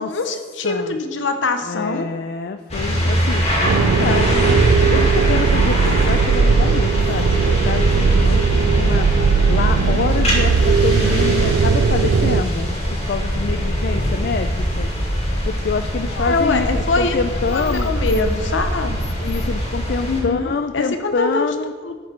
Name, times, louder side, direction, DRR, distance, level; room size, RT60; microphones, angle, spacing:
voice 1, 0.0-2.1 4.8-5.1 16.2-17.2 17.5-19.0 20.1-21.5 21.8-22.0, left 3 dB, 70° left, 8 dB, 0.8 m, -23 dB
voice 2, 0.6-1.0 1.6-4.6 4.9-9.1 9.5-12.7 13.1-14.9 15.4-17.9 19.2-21.7, left 4 dB, 55° left, 8 dB, 0.4 m, -26 dB
sound 1, 2.7-20.2, equal, 35° left, 1.9 m, -22 dB
sound 2, 3.6-12.4, right 5 dB, 70° right, 0.3 m, -18 dB
10.0 x 6.5 x 4.4 m, 1.5 s
head